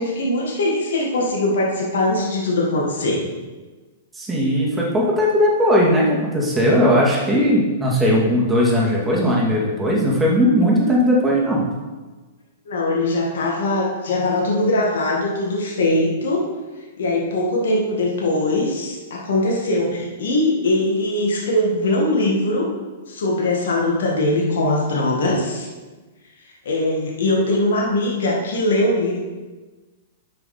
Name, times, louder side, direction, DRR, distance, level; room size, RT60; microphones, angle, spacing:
voice 1, 0.0-3.2 12.7-16.4 17.0-22.7 23.1-25.7 26.7-29.2, left 1 dB, 70° left, -2 dB, 1.9 m, -21 dB
voice 2, 4.1-11.6, equal, 10° right, -4 dB, 2.5 m, -18 dB
9.1 x 5.7 x 4.3 m, 1.3 s
hypercardioid pair, 110°, 0 cm